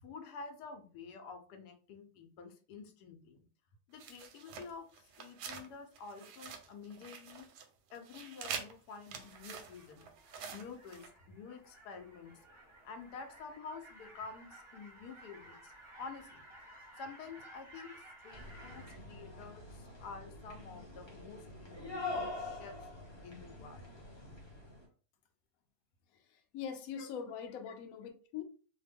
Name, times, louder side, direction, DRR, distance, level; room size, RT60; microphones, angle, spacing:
voice 1, 0.0-3.4 3.9-7.5 7.9-10.1 10.5-12.3 12.8-22.8 23.2-23.9 27.0-27.1, left 5 dB, 85° left, 1.2 m, -49 dB
sound 1, 4.0-5.7 5.9-7.7 7.9-11.1, right 6 dB, 90° right, 1.2 m, -46 dB
sound 2, 9.1-18.9, right 1 dB, 30° right, 0.5 m, -56 dB
sound 3, 18.3-24.8, left 3 dB, 25° left, 0.7 m, -45 dB
voice 2, 26.1-28.4, left 7 dB, 70° left, 1.0 m, -43 dB
3.0 x 2.1 x 3.3 m
omnidirectional pair, 1.7 m